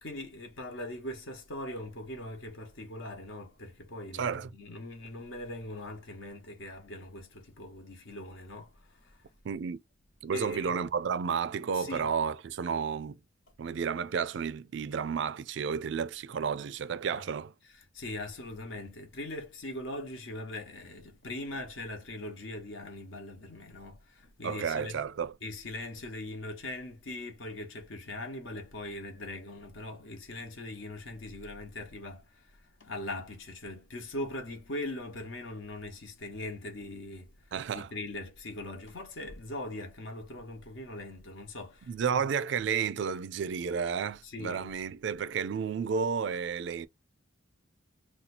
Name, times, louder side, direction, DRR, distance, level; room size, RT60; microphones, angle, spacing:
voice 1, 0.0-9.3 10.3-10.8 11.7-12.1 17.1-17.2 17.6-25.1 25.4-42.3 44.2-44.8, left 1 dB, 65° left, 0.9 m, -41 dB
voice 2, 4.1-4.5 9.4-9.8 10.2-13.2 13.6-17.5 24.4-25.3 37.5-37.9 41.9-46.9, right 6 dB, 60° right, 0.3 m, -32 dB
2.8 x 2.3 x 4.1 m
head